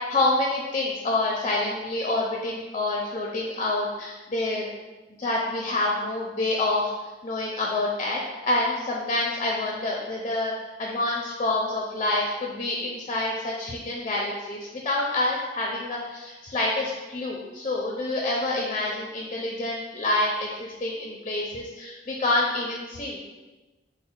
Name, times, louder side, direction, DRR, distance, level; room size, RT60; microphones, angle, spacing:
voice 1, 0.0-4.7 5.2-6.9 7.2-10.5 10.8-14.6 14.8-23.2, left 2 dB, 35° left, -2 dB, 0.5 m, -27 dB
4.1 x 2.1 x 4.4 m, 1.2 s
head